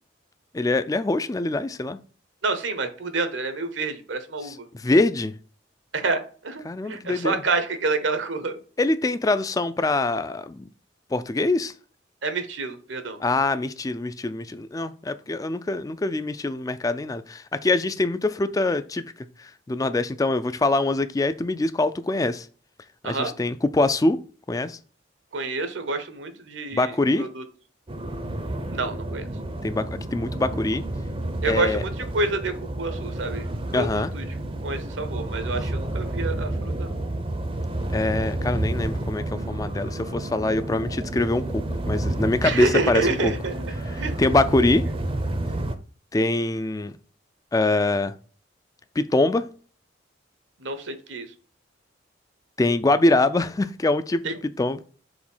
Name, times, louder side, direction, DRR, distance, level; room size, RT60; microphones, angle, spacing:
voice 1, 0.5-2.0 4.4-5.3 6.6-7.4 8.8-10.6 11.1-11.7 13.2-19.0 19.4-22.5 23.0-24.2 24.5-24.8 26.7-27.3 29.6-30.8 31.4-31.8 33.7-34.1 37.9-43.3 43.9-44.8 46.1-46.9 47.5-48.1 49.0-49.5 52.6-54.8, left 2 dB, 20° left, 0.3 m, -24 dB
voice 2, 2.4-4.7 5.9-8.6 12.2-13.2 23.0-23.3 25.3-27.4 28.7-29.3 31.4-34.2 34.6-37.0 42.4-44.2 50.6-51.3 54.2-54.3, right 3 dB, 75° right, 1.0 m, -28 dB
sound 1, 27.9-45.8, right 1 dB, 30° right, 0.6 m, -30 dB
5.0 x 4.1 x 5.4 m
head